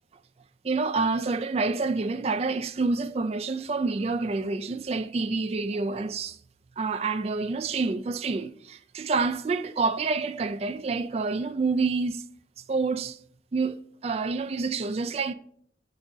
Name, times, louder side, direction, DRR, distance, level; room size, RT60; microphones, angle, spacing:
voice 1, 0.6-6.4 6.8-12.3 12.7-13.2 13.5-15.3, right 4 dB, 35° right, 0.3 m, -28 dB
8.9 x 4.0 x 4.8 m
head